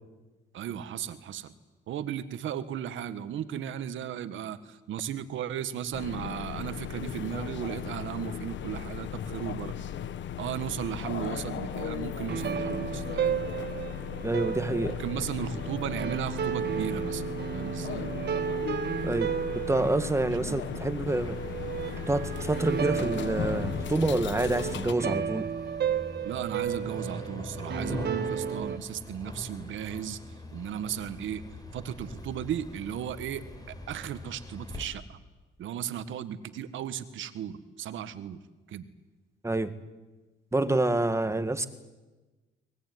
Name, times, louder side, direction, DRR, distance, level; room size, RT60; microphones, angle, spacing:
voice 1, 0.5-1.5 1.9-9.7 10.4-13.4 15.0-17.2 17.5-18.1 20.4-20.9 26.2-30.2 30.5-31.4 31.7-35.2 35.6-38.4 38.7-38.9, right 9 dB, 80° right, 1.6 m, -35 dB
sound 1, 5.9-24.9, left 9 dB, 70° left, 1.3 m, -37 dB
sound 2, 11.3-28.8, right 8 dB, 55° right, 1.3 m, -34 dB
voice 2, 14.2-15.0 19.0-21.4 22.1-25.5 39.4-39.7 40.5-41.7, right 2 dB, 15° right, 1.8 m, -27 dB
sound 3, 21.0-34.8, left 1 dB, 20° left, 4.7 m, -42 dB
23.5 x 20.0 x 9.5 m
cardioid pair, 90°, 20 cm